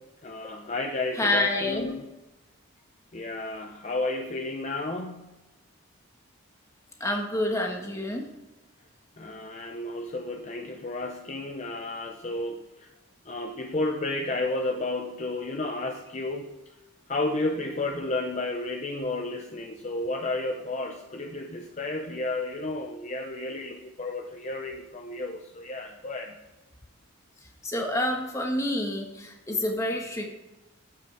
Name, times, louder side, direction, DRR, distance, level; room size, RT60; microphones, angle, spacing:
voice 1, 0.0-2.1 3.1-5.2 9.2-12.9 13.2-16.6 17.1-26.4, left 2 dB, 30° left, 4 dB, 0.6 m, -32 dB
voice 2, 1.2-1.9 7.0-8.2 27.6-30.3, left 1 dB, 15° left, 2 dB, 1.3 m, -28 dB
9.4 x 7.9 x 4.6 m, 1.0 s
head